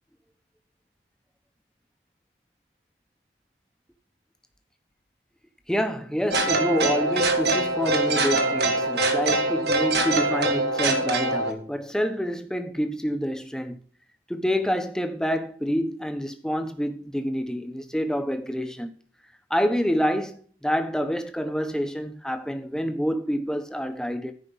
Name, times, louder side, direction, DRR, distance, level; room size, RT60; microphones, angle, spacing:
voice 1, 5.7-13.8 14.3-18.9 19.5-24.3, equal, 5° left, 0.9 m, -27 dB
sound 1, 6.3-11.5, right 2 dB, 65° right, 1.7 m, -23 dB
13.5 x 5.3 x 5.5 m
head